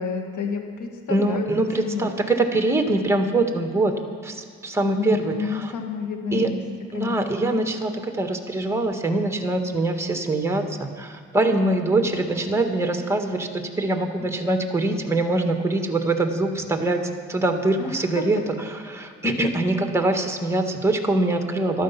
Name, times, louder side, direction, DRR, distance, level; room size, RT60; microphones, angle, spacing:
voice 1, 0.0-2.1 4.8-6.6 6.9-7.5 17.8-18.3, left 5 dB, 75° left, 4 dB, 2.1 m, -30 dB
voice 2, 1.1-3.9 4.2-5.7 6.3-6.5 6.9-21.8, right 2 dB, 10° right, 5 dB, 1.7 m, -23 dB
15.0 x 12.0 x 5.9 m, 2.3 s
cardioid pair, 90°, 30 cm